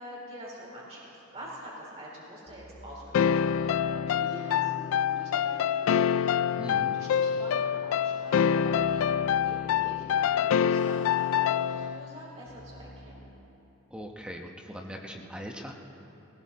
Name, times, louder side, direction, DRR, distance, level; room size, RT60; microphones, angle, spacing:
voice 1, 0.0-4.7 5.0-6.1 6.5-13.3, right 1 dB, 30° right, -6 dB, 4.0 m, -45 dB
sound 1, 1.3-1.6 2.5-5.8 6.5-13.3, left 1 dB, 30° left, 2.7 m, -51 dB
sound 2, 3.1-12.0, left 8 dB, 70° left, 0.3 m, -26 dB
voice 2, 6.6-6.9 13.9-15.7, equal, 5° right, 1 dB, 1.0 m, -40 dB
18.5 x 18.5 x 4.2 m, 2.9 s
head